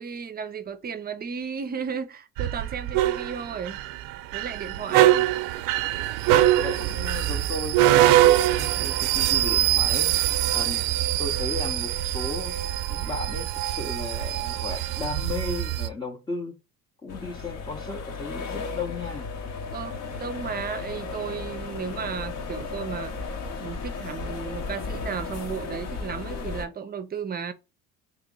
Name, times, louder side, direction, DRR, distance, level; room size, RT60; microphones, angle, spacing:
voice 1, 0.0-3.8 4.3-5.2 19.7-23.3 23.6-27.5, right 6 dB, 30° right, 0.6 m, -34 dB
sound 1, 2.4-15.9, right 13 dB, 75° right, 0.5 m, -23 dB
voice 2, 4.9-5.3 6.6-12.5 12.9-16.5 17.0-19.3, left 3 dB, 15° left, 0.7 m, -35 dB
sound 2, 17.1-26.7, left 4 dB, 50° left, 1.0 m, -35 dB
3.0 x 2.9 x 3.6 m
cardioid pair, 110°, 33 cm